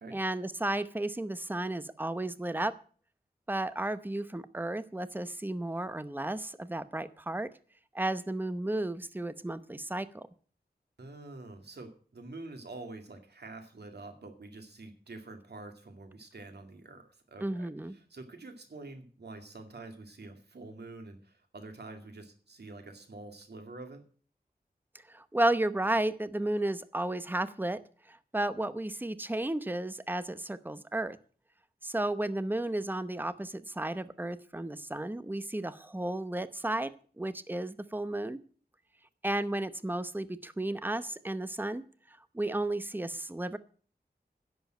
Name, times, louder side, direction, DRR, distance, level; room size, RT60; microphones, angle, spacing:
voice 1, 0.1-2.7 3.5-7.5 7.9-10.3 17.4-17.9 25.1-27.8 28.1-31.2 31.8-36.9 37.2-38.4 39.2-41.8 42.3-43.6, right 1 dB, 10° right, 13 dB, 0.8 m, -33 dB
voice 2, 11.0-24.0, right 2 dB, 90° right, 5 dB, 2.3 m, -47 dB
10.5 x 7.1 x 9.0 m, 0.43 s
wide cardioid pair, 80°, 17 cm